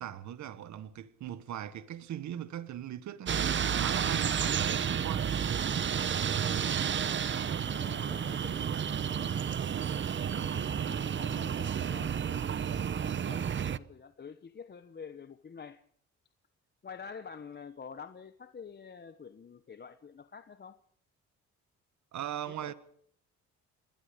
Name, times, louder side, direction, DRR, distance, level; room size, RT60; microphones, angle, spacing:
voice 1, 0.0-5.3 22.1-22.7, right 11 dB, 70° right, 1.4 m, -39 dB
sound 1, 3.3-13.8, right 8 dB, 40° right, 0.8 m, -31 dB
voice 2, 6.8-9.5 10.1-15.8 16.8-20.8 22.5-22.7, left 6 dB, 35° left, 1.0 m, -48 dB
28.0 x 20.5 x 5.1 m
cardioid pair, 90°, 30 cm